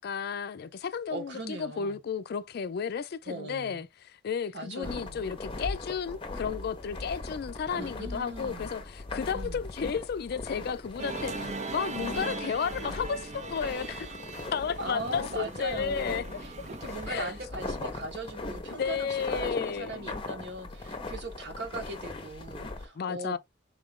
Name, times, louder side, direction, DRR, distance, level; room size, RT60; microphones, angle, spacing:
voice 1, 0.0-3.9 4.2-14.1 14.5-16.2 17.1-17.3 18.4-18.5 18.8-20.1 23.0-23.4, left 6 dB, 55° left, 0.3 m, -33 dB
voice 2, 1.1-2.0 3.2-3.8 4.5-5.3 7.8-8.8 9.3-9.6 14.8-23.4, right 2 dB, 60° right, 1.2 m, -39 dB
sound 1, 4.8-22.9, left 2 dB, 25° left, 0.7 m, -39 dB
Musical instrument, 11.0-17.5, right 4 dB, 35° right, 0.5 m, -40 dB
3.7 x 2.4 x 3.6 m
head